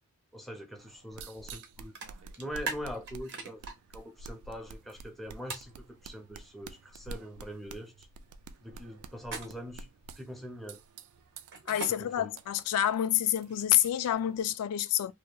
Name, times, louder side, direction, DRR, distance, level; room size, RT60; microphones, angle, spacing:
voice 1, 0.3-1.9 2.4-8.1 8.6-9.9 10.2-10.8 11.9-12.3, equal, ahead, 0.5 m, -43 dB
sound 1, 0.8-14.6, right 3 dB, 80° right, 0.3 m, -50 dB
sound 2, 1.5-1.7 2.0-3.7 5.5-5.7 9.2-9.8 11.5-11.9 13.3-14.2, right 4 dB, 50° right, 0.7 m, -39 dB
voice 2, 11.7-15.1, left 11 dB, 85° left, 0.3 m, -28 dB
2.7 x 2.1 x 2.2 m
head